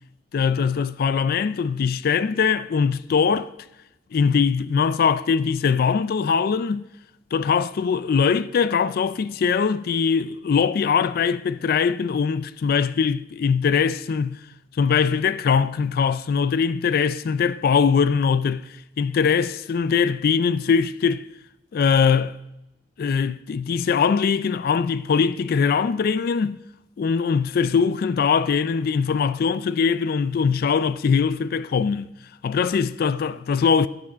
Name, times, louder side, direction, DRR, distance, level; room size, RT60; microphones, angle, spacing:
voice 1, 0.3-3.5 4.1-6.9 7.3-14.4 14.8-18.7 19.0-21.3 21.7-22.4 23.0-26.6 27.0-32.1 32.4-33.9, left 6 dB, 50° left, 0.3 m, -21 dB
12.0 x 6.2 x 6.1 m
head